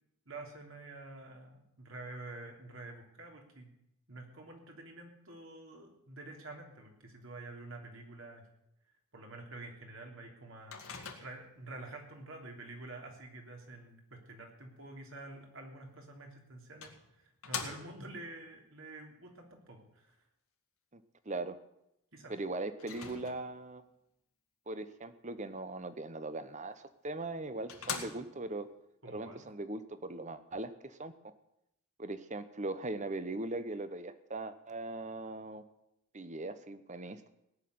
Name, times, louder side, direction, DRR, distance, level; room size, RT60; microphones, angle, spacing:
voice 1, 0.3-3.7 4.1-8.5 9.1-20.1 22.1-22.3 29.0-29.5, right 2 dB, 60° right, 1 dB, 3.1 m, -48 dB
Microwave oven, 10.7-11.6 16.0-16.1 16.8-18.2 22.8-23.7 26.8-26.9 27.3-27.4 27.7-28.6, left 6 dB, 75° left, 2.1 m, -42 dB
voice 2, 20.9-21.6 22.3-23.8 24.7-28.7 29.1-31.1 32.0-35.6 36.1-37.3, right 2 dB, 35° right, 11 dB, 1.0 m, -40 dB
18.0 x 6.6 x 9.5 m, 0.82 s
head